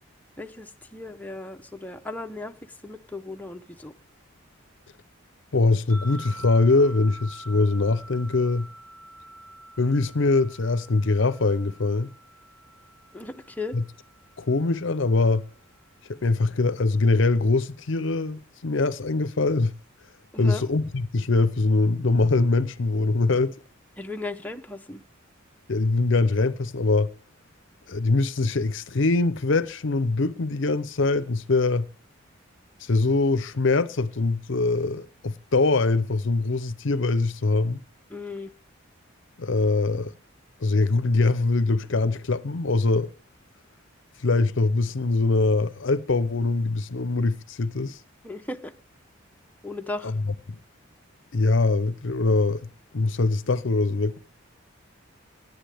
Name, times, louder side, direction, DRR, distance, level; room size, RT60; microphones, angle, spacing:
voice 1, 0.4-3.9 13.1-13.8 20.3-20.6 24.0-25.0 38.1-38.5 48.2-48.7 49.6-50.2, left 3 dB, 5° left, 0.7 m, -36 dB
voice 2, 5.5-8.7 9.8-12.1 13.7-13.8 14.4-15.4 16.1-19.7 20.4-23.6 25.7-27.1 27.9-31.9 32.8-37.8 39.4-40.1 40.6-43.1 44.2-48.0 50.0-50.1 50.5-50.6 51.3-52.7 52.9-54.2, left 3 dB, 60° left, 0.6 m, -23 dB
sound 1, 5.9-15.2, right 1 dB, 55° right, 6.7 m, -46 dB
18.0 x 11.0 x 3.4 m
head